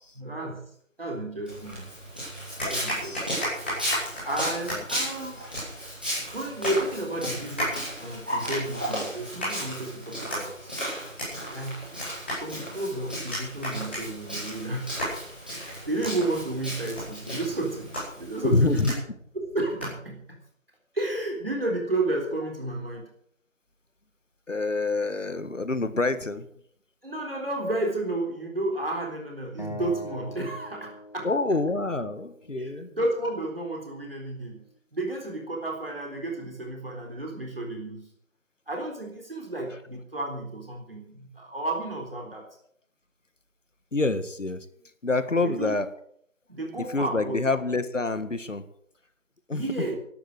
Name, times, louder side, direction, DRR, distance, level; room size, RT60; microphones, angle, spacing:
voice 1, 0.2-0.6 1.0-1.9 2.6-3.2 4.2-5.4 6.3-10.7 11.5-11.9 12.3-15.1 15.5-19.0 19.3-20.4 20.9-23.1 27.0-31.3 32.5-34.6 34.9-38.1 38.7-42.5 45.4-45.8 46.5-47.4 49.5-50.0, right 2 dB, 45° right, 0 dB, 3.8 m, -32 dB
Walk footsteps, 1.5-18.9, equal, 5° right, 2.4 m, -35 dB
sound 1, 2.0-2.1 2.6-20.2, equal, 10° left, 4.9 m, -37 dB
voice 2, 18.4-18.9 24.5-26.5 31.2-32.9 43.9-44.7 45.0-45.9 46.8-48.6 49.5-49.9, left 3 dB, 65° left, 12 dB, 1.8 m, -27 dB
Acoustic guitar, 29.6-32.8, equal, 35° left, 1.1 m, -42 dB
15.5 x 12.0 x 6.6 m, 0.67 s
figure-of-eight pair, 180°, 39 cm